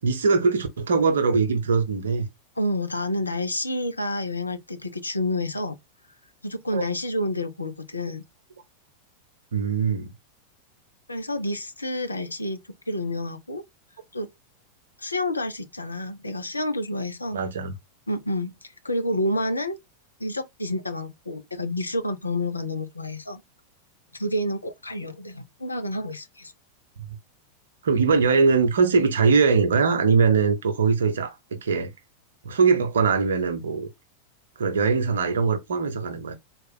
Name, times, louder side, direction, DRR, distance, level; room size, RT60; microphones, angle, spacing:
voice 1, 0.0-2.3 6.7-6.9 9.5-10.1 17.3-17.7 27.8-31.9 32.4-33.9 34.6-36.3, right 5 dB, 65° right, 0.8 m, -21 dB
voice 2, 2.6-5.8 6.4-8.2 11.1-12.6 12.9-13.6 14.1-14.3 15.0-17.4 18.1-19.8 20.2-23.4 24.1-26.5, left 1 dB, 80° left, 0.6 m, -29 dB
3.9 x 2.4 x 4.2 m
figure-of-eight pair, 90°, 0 cm